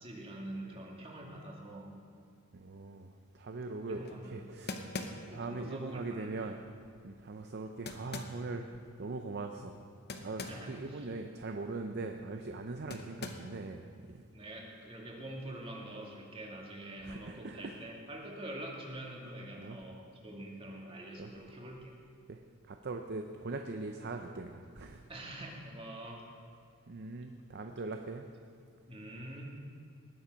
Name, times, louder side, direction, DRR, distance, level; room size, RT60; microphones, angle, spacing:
voice 1, 0.0-1.9 3.9-4.3 5.3-6.3 10.4-11.1 12.9-13.1 14.3-20.0 20.2-21.9 25.1-26.3 28.9-29.6, right 1 dB, 25° right, -2 dB, 1.9 m, -45 dB
voice 2, 2.5-4.9 5.3-6.6 7.0-9.8 10.2-14.2 17.0-17.8 19.6-19.8 21.2-21.3 22.3-25.1 26.9-28.3, right 3 dB, 50° right, 5 dB, 0.6 m, -41 dB
sound 1, 4.1-4.2 4.7-5.5 7.9-8.4 10.1-10.7 11.0-11.1 12.9-13.6, left 3 dB, 45° left, 0.9 m, -41 dB
19.0 x 7.3 x 5.3 m, 2.2 s
head